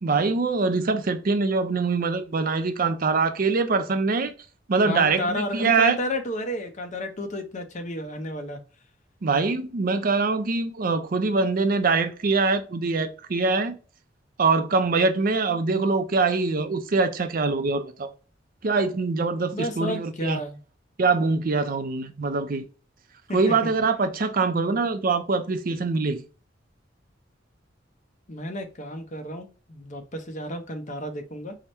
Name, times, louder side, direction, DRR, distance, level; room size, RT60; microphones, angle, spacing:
voice 1, 0.0-4.3 4.7-6.0 9.2-13.8 14.4-18.1 18.6-20.4 21.0-22.6 23.3-26.2, right 4 dB, 50° right, 0.5 m, -23 dB
voice 2, 4.8-8.6 19.5-20.6 23.3-23.5 28.3-31.6, left 1 dB, 40° left, 0.7 m, -31 dB
4.7 x 2.2 x 4.3 m
head